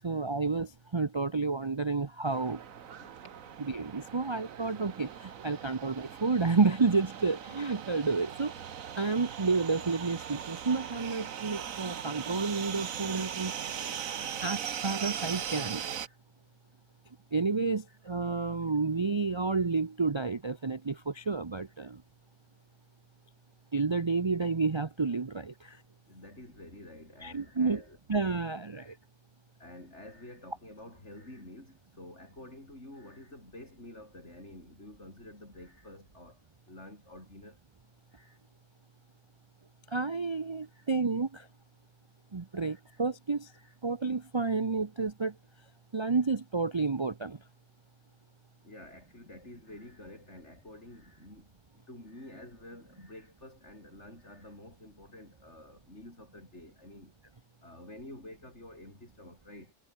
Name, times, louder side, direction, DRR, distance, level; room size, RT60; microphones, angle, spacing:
voice 1, 0.0-2.6 3.6-8.5 8.9-13.5 14.4-15.8 17.3-22.0 23.7-25.8 27.2-27.8 28.1-28.9 39.9-41.5 42.3-43.5 43.8-45.3 45.9-47.4, right 4 dB, 30° right, 0.6 m, -30 dB
sound 1, 2.2-16.1, right 8 dB, 85° right, 1.5 m, -39 dB
voice 2, 2.9-3.2 4.1-4.3 5.5-5.7 13.8-14.0 15.9-16.2 17.9-18.0 21.8-21.9 25.6-25.8 26.1-28.0 28.7-29.0 29.6-36.4 36.7-37.6 38.1-38.4 40.7-40.9 42.7-43.0 43.5-43.7 44.4-44.6 46.0-46.2 48.6-57.1 57.6-59.7, left 1 dB, 55° left, 8.0 m, -50 dB
omnidirectional pair, 1.4 m